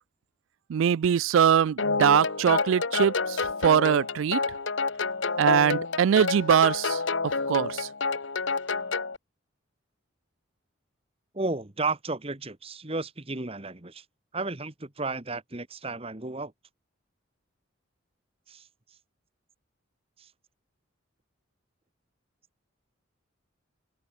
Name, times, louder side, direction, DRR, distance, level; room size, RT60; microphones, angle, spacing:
voice 1, 0.7-3.4 3.6-4.4 5.4-7.0 7.5-7.9, right 8 dB, 75° right, 0.3 m, -22 dB
sound 1, 1.8-9.2, left 4 dB, 65° left, 1.4 m, -29 dB
voice 2, 11.3-14.0 14.3-16.5 18.5-18.6, right 3 dB, 30° right, 1.4 m, -33 dB
open air
head